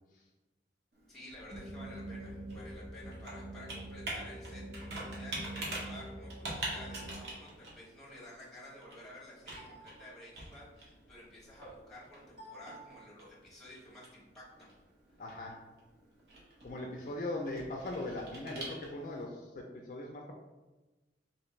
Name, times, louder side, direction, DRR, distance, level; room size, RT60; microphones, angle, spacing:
Computer keyboard, 0.9-19.2, right 2 dB, 65° right, 1.0 m, -46 dB
voice 1, 1.1-4.6 4.9-14.7, left 1 dB, ahead, -6 dB, 1.0 m, -52 dB
sound 1, 1.5-7.1, right 1 dB, 30° right, 0.7 m, -45 dB
voice 2, 15.2-15.7 16.6-20.3, left 2 dB, 45° left, 1 dB, 0.3 m, -40 dB
3.2 x 2.7 x 3.1 m, 1.1 s
head